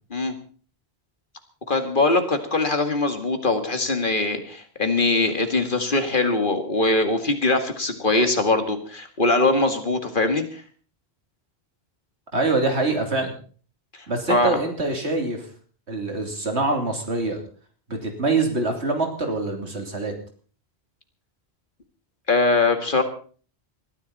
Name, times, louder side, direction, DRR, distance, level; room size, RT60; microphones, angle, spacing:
voice 1, 1.7-10.6 14.3-14.6 22.3-23.0, left 2 dB, 50° left, 7 dB, 2.2 m, -22 dB
voice 2, 12.3-13.3 14.1-15.5 15.9-17.4 17.9-20.1, right 3 dB, 85° right, 3 dB, 3.4 m, -24 dB
20.5 x 14.0 x 4.1 m, 0.42 s
omnidirectional pair, 1.1 m